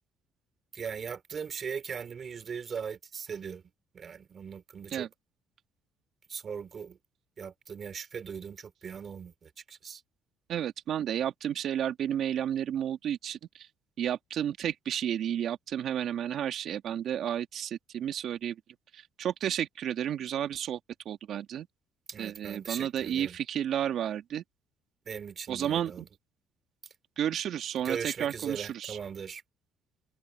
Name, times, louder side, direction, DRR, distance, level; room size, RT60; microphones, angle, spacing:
voice 1, 0.7-3.6 3.9-5.1 6.3-7.0 7.4-10.0 22.1-23.4 25.0-26.1 27.8-29.4, right 6 dB, 45° right, 3.3 m, -39 dB
voice 2, 10.5-13.7 14.0-18.6 18.9-20.8 21.1-21.7 22.2-24.4 25.5-26.1 27.2-29.0, right 10 dB, 60° right, 2.2 m, -32 dB
supercardioid pair, 80°, 0 cm